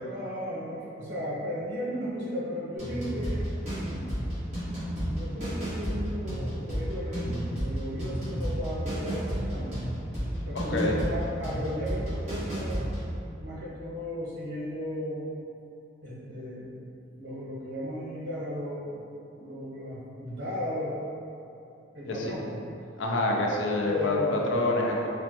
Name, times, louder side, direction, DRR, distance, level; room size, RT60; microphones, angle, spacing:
voice 1, 0.0-4.0 5.1-9.7 10.4-13.0 13.4-15.3 16.0-16.8 17.2-19.0 19.4-21.1 21.9-22.6 23.8-24.4, equal, 90° right, -8 dB, 1.1 m, -35 dB
sound 1, 2.8-13.1, equal, 40° right, 1.4 m, -32 dB
voice 2, 10.5-11.0 22.1-22.4 23.0-25.1, left 2 dB, 80° left, -1 dB, 0.5 m, -27 dB
4.2 x 2.1 x 2.8 m, 2.8 s
head